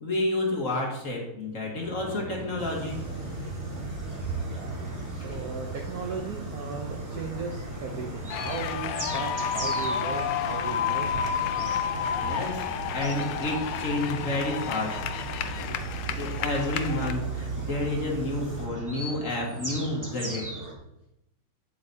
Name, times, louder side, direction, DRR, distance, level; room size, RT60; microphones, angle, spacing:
voice 1, 0.0-3.7 5.2-5.4 12.1-15.0 16.2-20.5, left 2 dB, 40° left, -1 dB, 1.6 m, -30 dB
sound 1, 1.7-20.7, right 2 dB, 20° right, 0.5 m, -39 dB
sound 2, 2.6-18.7, right 2 dB, 45° right, 2.4 m, -38 dB
voice 2, 4.4-11.2 15.7-15.8, right 5 dB, 65° right, 3 dB, 0.9 m, -37 dB
sound 3, 8.3-17.1, left 8 dB, 75° left, 1.0 m, -31 dB
8.6 x 8.0 x 2.7 m, 0.85 s
omnidirectional pair, 2.3 m